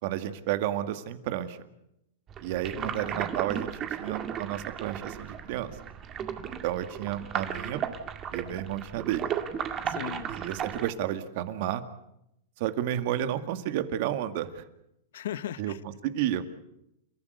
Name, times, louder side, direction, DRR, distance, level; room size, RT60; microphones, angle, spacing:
voice 1, 0.0-1.6 2.4-3.7 4.0-5.7 6.6-7.8 8.3-9.3 10.3-11.8 12.6-14.6 15.6-16.4, right 12 dB, 55° right, 2.0 m, -31 dB
sound 1, 2.3-10.9, right 8 dB, 25° right, 1.9 m, -35 dB
voice 2, 2.7-3.1 9.9-10.3 15.1-15.8, left 11 dB, 75° left, 0.9 m, -37 dB
30.0 x 14.5 x 8.2 m
supercardioid pair, 145°, 0 cm